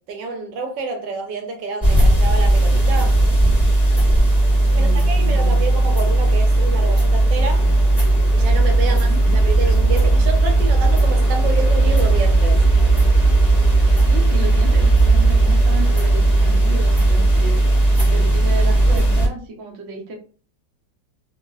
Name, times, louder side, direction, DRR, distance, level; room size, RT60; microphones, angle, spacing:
voice 1, 0.0-3.2 4.7-7.7 8.3-12.6, right 3 dB, 80° right, 1.2 m, -28 dB
sound 1, 1.8-19.3, right 2 dB, ahead, 0.7 m, -16 dB
voice 2, 4.6-5.6 8.7-9.2 14.0-17.6 18.1-20.2, right 3 dB, 60° right, 0.8 m, -33 dB
3.0 x 2.0 x 2.2 m
omnidirectional pair, 1.9 m